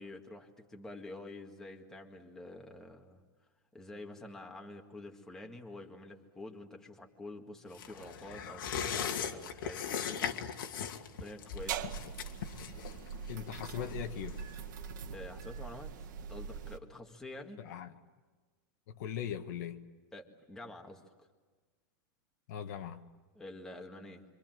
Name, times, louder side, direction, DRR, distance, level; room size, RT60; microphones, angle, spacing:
voice 1, 0.0-3.2 3.7-10.4 11.2-12.0 15.1-17.6 20.1-21.3 23.4-24.2, left 2 dB, 5° left, 1.8 m, -48 dB
sound 1, 7.7-14.8 15.1-15.2, left 8 dB, 90° left, 2.4 m, -39 dB
sound 2, 11.6-16.8, right 7 dB, 65° right, 2.0 m, -42 dB
voice 2, 13.3-14.4 17.6-17.9 18.9-19.8 22.5-23.0, left 9 dB, 50° left, 1.5 m, -40 dB
27.0 x 25.5 x 7.7 m
supercardioid pair, 175°, 11 cm